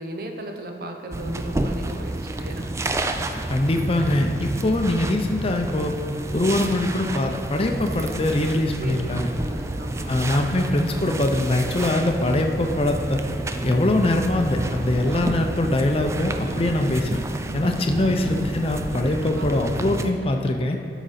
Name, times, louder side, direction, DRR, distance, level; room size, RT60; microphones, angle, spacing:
voice 1, 0.0-3.0 8.8-9.0 9.4-10.1 17.6-18.0 19.1-19.5 20.3-20.4, right 1 dB, 55° right, 4 dB, 0.8 m, -36 dB
sound 1, 1.1-20.1, right 1 dB, 15° right, 0.3 m, -30 dB
voice 2, 3.5-5.9 6.3-9.3 10.1-13.2 13.6-17.2 17.5-20.8, left 1 dB, 30° left, 3 dB, 0.5 m, -22 dB
12.5 x 5.0 x 4.2 m, 2.6 s
head